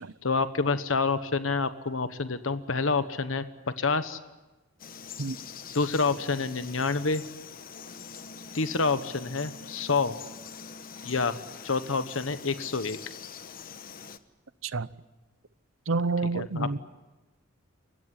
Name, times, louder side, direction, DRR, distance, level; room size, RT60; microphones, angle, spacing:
voice 1, 0.2-3.4 3.8-4.2 5.7-7.2 8.5-10.1 11.0-11.4 11.6-13.0 16.3-16.7, left 4 dB, 75° left, 11 dB, 1.2 m, -27 dB
Frog, 4.8-14.2, left 6 dB, 45° left, 1.1 m, -44 dB
voice 2, 15.9-16.8, right 3 dB, 80° right, 17 dB, 0.8 m, -28 dB
29.0 x 16.0 x 9.8 m, 1.1 s
head